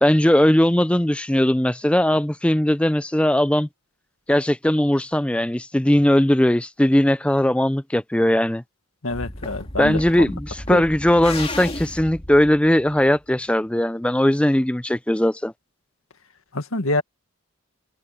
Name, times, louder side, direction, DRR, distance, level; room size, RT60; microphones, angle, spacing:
voice 1, 0.0-3.7 4.3-8.6 9.8-15.5, left 1 dB, 5° left, 0.4 m, -19 dB
voice 2, 9.0-10.3 10.7-10.8 16.5-17.0, left 2 dB, 85° left, 1.9 m, -26 dB
sound 1, 9.1-13.3, left 2 dB, 25° left, 2.7 m, -34 dB
head